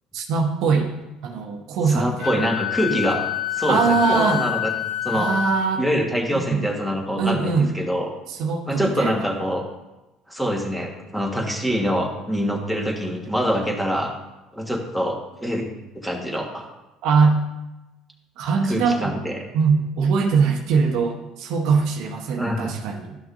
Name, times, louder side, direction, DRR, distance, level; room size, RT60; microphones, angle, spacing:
voice 1, 0.1-0.9 1.2-2.5 3.7-4.4 5.1-5.8 6.3-6.6 7.2-7.7 8.3-9.3 17.0-17.4 18.4-19.1 19.5-23.2, right 5 dB, 70° right, 3 dB, 0.9 m, -22 dB
voice 2, 1.9-3.2 3.5-4.7 5.0-5.3 5.8-8.1 8.7-9.6 10.3-14.1 14.5-15.7 15.9-16.7 18.6-19.4 22.4-22.7, equal, 5° left, 1 dB, 1.4 m, -25 dB
Wind instrument woodwind instrument, 2.2-5.7, left 11 dB, 50° left, 0.7 m, -27 dB
11.5 x 6.0 x 2.6 m, 1.0 s
hypercardioid pair, 70°, 0 cm